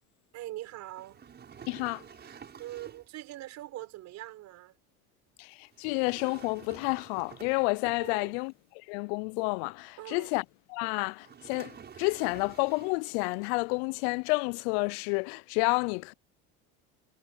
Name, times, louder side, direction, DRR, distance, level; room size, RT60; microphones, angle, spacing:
voice 1, 0.3-1.2 2.2-4.8 8.0-8.4 10.0-10.3, right 15 dB, 55° right, 5.1 m, -43 dB
sound 1, 0.9-3.2 5.7-8.4 11.2-13.1, right 7 dB, 30° right, 7.4 m, -50 dB
voice 2, 1.7-2.0 5.4-10.4 10.7-16.1, left 31 dB, 75° left, 0.5 m, -30 dB
supercardioid pair, 110°, 32 cm